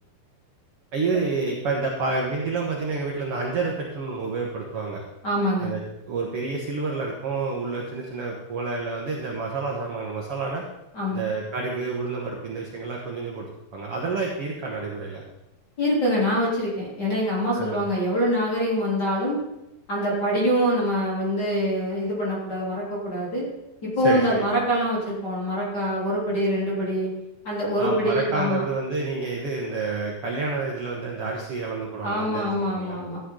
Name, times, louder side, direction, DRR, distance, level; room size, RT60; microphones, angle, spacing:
voice 1, 0.9-5.0 5.6-5.8 6.1-10.6 11.1-15.2 17.5-17.8 24.0-24.4 27.8-33.0, right 3 dB, 55° right, -1 dB, 1.7 m, -29 dB
voice 2, 5.2-5.7 10.9-11.2 15.8-19.4 19.9-23.5 23.8-27.1 27.4-28.6 32.0-33.2, equal, 25° left, -6 dB, 3.8 m, -24 dB
14.0 x 10.0 x 3.9 m, 0.93 s
omnidirectional pair, 4.4 m